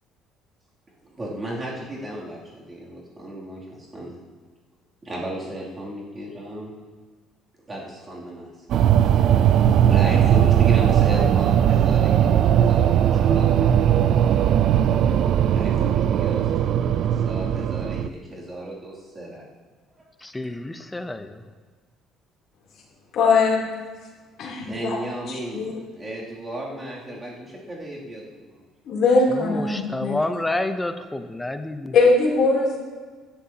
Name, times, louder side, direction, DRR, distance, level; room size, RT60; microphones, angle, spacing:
voice 1, 1.0-4.2 5.0-6.7 7.7-8.5 9.0-9.6 9.9-13.8 15.5-19.4 20.0-20.1 24.6-28.6, right 1 dB, 20° right, 2.7 m, -34 dB
sound 1, 8.7-18.1, right 10 dB, 50° right, 0.4 m, -18 dB
voice 2, 20.2-21.4 29.3-31.9, left 2 dB, 10° left, 0.6 m, -29 dB
voice 3, 23.1-23.7 24.4-24.9 25.3-25.7 28.8-30.2 31.9-32.8, left 3 dB, 50° left, 3.1 m, -20 dB
15.5 x 11.5 x 2.9 m
cardioid pair, 165°, 0 cm